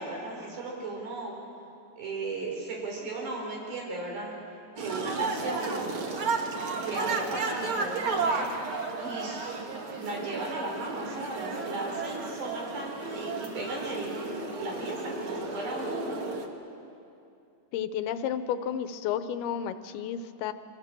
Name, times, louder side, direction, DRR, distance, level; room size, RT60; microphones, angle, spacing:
voice 1, 0.0-1.3 2.0-4.4 4.8-6.0 6.8-8.5 9.0-9.6 10.0-14.1 14.6-16.2, right 2 dB, 80° right, -1 dB, 6.5 m, -36 dB
sound 1, 4.8-16.5, right 3 dB, 45° right, 2.0 m, -33 dB
voice 2, 17.7-20.5, left 9 dB, 75° left, 11 dB, 2.7 m, -32 dB
29.5 x 24.5 x 7.7 m, 2.6 s
omnidirectional pair, 4.8 m